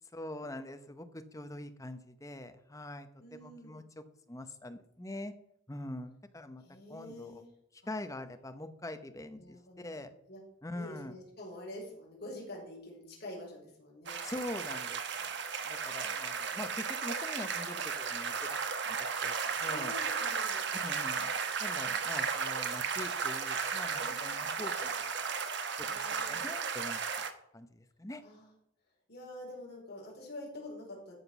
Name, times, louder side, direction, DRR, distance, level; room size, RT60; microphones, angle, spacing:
voice 1, 0.1-3.8 4.3-5.3 5.7-6.6 6.9-7.4 7.9-10.1 10.6-11.2 14.2-15.3 15.6-18.6 18.8-19.9 20.8-25.3 25.8-27.3 27.5-27.7 28.0-28.2, left 1 dB, 15° left, 8 dB, 0.8 m, -44 dB
voice 2, 3.2-3.8 6.6-7.5 9.4-10.0 10.3-10.4 10.7-14.2 19.6-20.6 24.0-24.4 25.9-26.4 28.2-28.5 29.1-31.1, left 1 dB, 50° left, -2 dB, 4.7 m, -46 dB
sound 1, 14.1-27.3, right 6 dB, 55° right, 1.0 m, -35 dB
13.5 x 5.9 x 6.0 m, 0.77 s
head